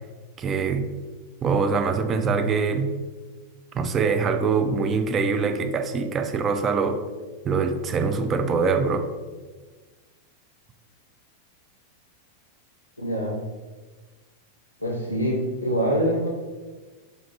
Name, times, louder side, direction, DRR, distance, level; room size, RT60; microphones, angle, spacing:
voice 1, 0.4-0.9 1.4-2.9 3.7-7.0 7.4-9.1, right 5 dB, 25° right, 7 dB, 0.3 m, -23 dB
voice 2, 13.0-13.4 14.8-16.3, equal, 90° left, -1 dB, 0.5 m, -24 dB
4.0 x 2.5 x 3.2 m, 1.3 s
figure-of-eight pair, 90°, 0 cm